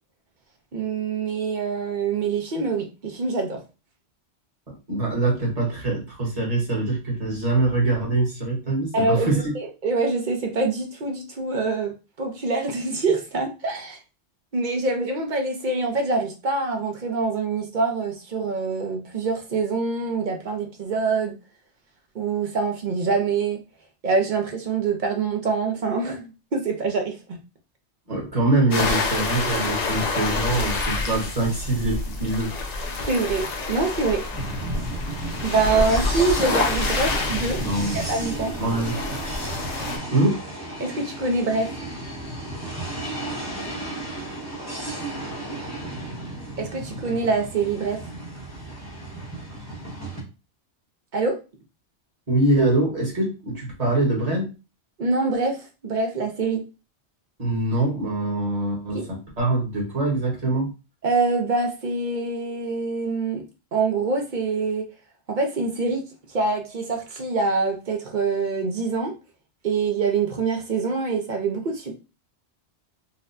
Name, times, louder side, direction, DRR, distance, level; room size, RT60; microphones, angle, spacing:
voice 1, 0.7-3.6 8.9-9.3 9.5-11.9 12.2-14.0 14.5-21.3 22.1-23.6 24.0-27.4 33.1-34.2 35.4-37.6 37.9-38.5 40.8-41.7 46.6-48.0 51.1-51.4 55.0-55.6 55.8-56.6 58.9-59.1 61.0-63.4 63.7-64.9 65.3-66.0 66.3-69.1 69.6-71.9, right 4 dB, 50° right, 3 dB, 0.7 m, -25 dB
voice 2, 4.7-9.5 28.1-32.5 37.6-38.0 38.6-39.1 40.1-40.4 52.3-54.5 57.4-60.7, right 2 dB, 35° right, -2 dB, 1.2 m, -24 dB
sound 1, 28.7-40.0, left 3 dB, 45° left, 0.6 m, -28 dB
sound 2, 34.3-50.2, right 1 dB, 15° left, 0.8 m, -33 dB
4.1 x 2.1 x 2.6 m, 0.31 s
omnidirectional pair, 1.2 m